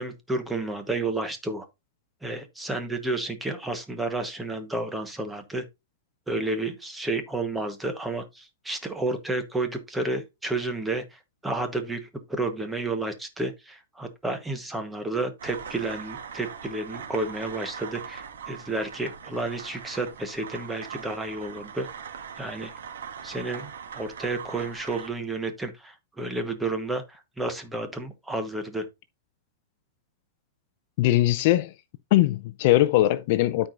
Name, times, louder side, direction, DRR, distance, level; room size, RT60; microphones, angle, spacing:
voice 1, 0.0-1.7 2.2-5.6 6.3-21.9 22.4-22.7 23.2-28.9, right 2 dB, 5° right, 1.1 m, -31 dB
sound 1, 15.4-25.1, right 7 dB, 85° right, 2.1 m, -41 dB
voice 2, 31.0-31.7 32.1-33.7, left 15 dB, 45° left, 0.5 m, -21 dB
13.0 x 4.6 x 2.5 m
supercardioid pair, 160°, 0 cm